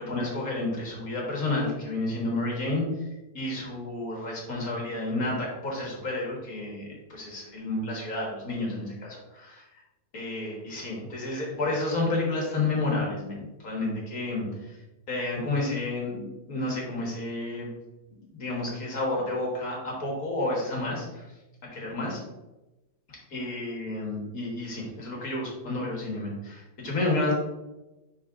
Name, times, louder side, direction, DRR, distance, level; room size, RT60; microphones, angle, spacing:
voice 1, 0.0-2.8 3.3-9.7 10.1-14.8 15.1-17.8 18.3-21.3 21.7-22.2 23.3-27.3, left 2 dB, 55° left, -2 dB, 2.0 m, -30 dB
9.8 x 4.1 x 2.5 m, 1.0 s
omnidirectional pair, 1.8 m